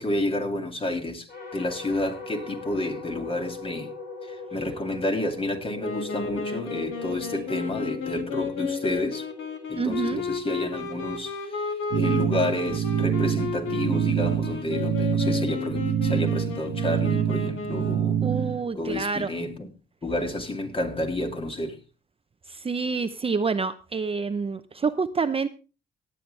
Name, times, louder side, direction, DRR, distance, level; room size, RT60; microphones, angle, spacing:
voice 1, 0.0-3.9 4.2-9.3 9.7-11.7 11.9-18.2 18.8-19.7 20.0-21.8, left 1 dB, 25° left, 2.3 m, -30 dB
sound 1, 1.3-10.6, left 3 dB, 50° left, 5.6 m, -41 dB
Wind instrument woodwind instrument, 5.8-18.2, left 5 dB, 85° left, 2.2 m, -33 dB
voice 2, 9.7-10.2 18.2-19.3 22.5-25.5, right 4 dB, 30° right, 0.7 m, -27 dB
sound 2, 11.9-18.6, right 9 dB, 75° right, 1.2 m, -26 dB
18.5 x 8.7 x 3.3 m
cardioid pair, 90°, 20 cm